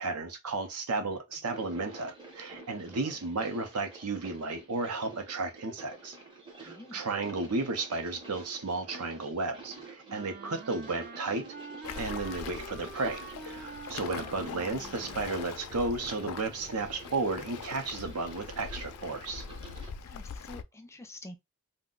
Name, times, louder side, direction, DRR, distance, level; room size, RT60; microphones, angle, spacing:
voice 1, 0.0-6.2 6.6-11.5 12.0-19.5, right 3 dB, 80° right, 0.7 m, -33 dB
sound 1, 1.3-20.0, right 3 dB, 20° right, 0.8 m, -49 dB
voice 2, 6.7-7.0 20.0-21.3, left 1 dB, 10° left, 0.5 m, -47 dB
Wind instrument woodwind instrument, 10.1-15.3, right 4 dB, 40° right, 0.4 m, -46 dB
Waves surf, 11.8-20.6, left 6 dB, 80° left, 0.4 m, -43 dB
2.5 x 2.2 x 3.8 m
head